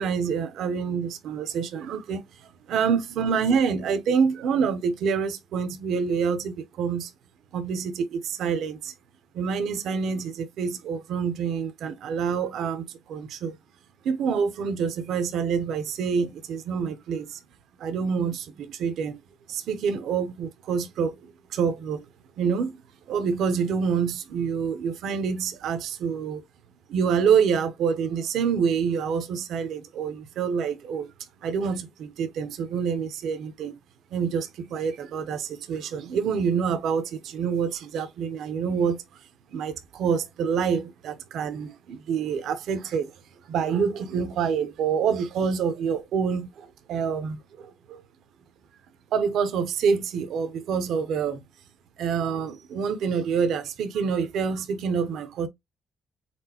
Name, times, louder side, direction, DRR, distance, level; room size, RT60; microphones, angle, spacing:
voice 1, 0.0-7.1 7.5-8.9 9.3-13.5 14.0-17.4 17.8-19.2 19.5-22.1 22.4-22.8 23.1-26.4 26.9-31.1 31.4-33.7 34.1-39.2 39.5-43.1 43.5-48.0 49.1-51.4 52.0-55.5, right 6 dB, 80° right, 0.8 m, -27 dB
4.3 x 3.9 x 2.9 m
cardioid pair, 90°, 0 cm